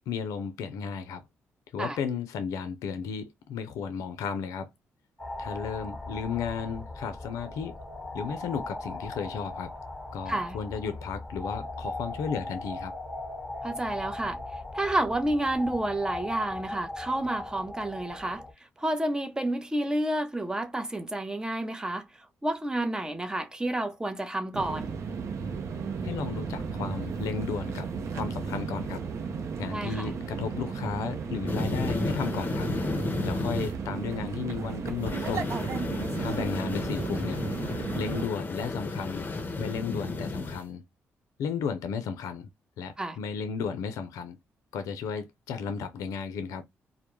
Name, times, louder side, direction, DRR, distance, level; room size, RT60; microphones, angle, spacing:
voice 1, 0.1-1.2 1.7-4.7 5.4-7.8 8.1-9.7 10.1-12.9 26.0-29.0 29.6-32.7 33.2-35.6 36.2-37.4 38.0-39.3 39.6-40.8 41.4-42.5 42.8-44.4 44.7-46.6, left 6 dB, 85° left, 0.4 m, -34 dB
sound 1, 5.2-18.5, left 2 dB, 5° left, 1.0 m, -39 dB
voice 2, 10.3-10.6 13.6-14.4 14.7-18.4 18.8-22.1 22.4-24.9 29.7-30.1 43.0-43.2, right 1 dB, 15° right, 0.6 m, -30 dB
sound 2, 24.5-38.3, right 5 dB, 60° right, 0.5 m, -34 dB
sound 3, 31.5-33.7 35.0-40.6, left 3 dB, 35° left, 0.6 m, -33 dB
2.1 x 2.0 x 3.0 m
supercardioid pair, 65°, 5 cm